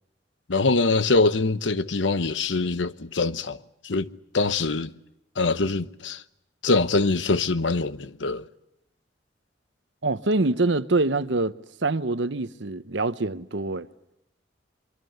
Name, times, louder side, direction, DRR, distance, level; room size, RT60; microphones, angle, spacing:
voice 1, 0.5-4.9 5.4-6.2 6.6-8.5, left 3 dB, 80° left, 1.0 m, -24 dB
voice 2, 10.0-11.5 11.8-13.9, right 2 dB, 75° right, 1.0 m, -25 dB
24.5 x 23.5 x 8.0 m
head